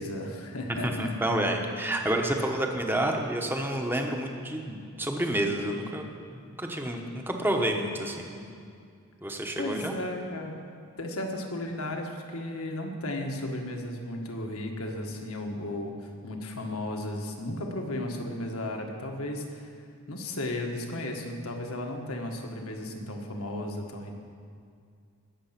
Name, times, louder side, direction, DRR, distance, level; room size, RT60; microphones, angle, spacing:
voice 1, 0.0-1.2 2.9-3.1 9.6-10.6 11.0-19.7 20.1-24.1, left 1 dB, 80° left, 2 dB, 1.7 m, -34 dB
voice 2, 0.8-6.0 6.3-8.5 9.2-9.9, right 1 dB, 10° right, 2 dB, 1.1 m, -29 dB
20.0 x 7.6 x 5.9 m, 2.3 s
head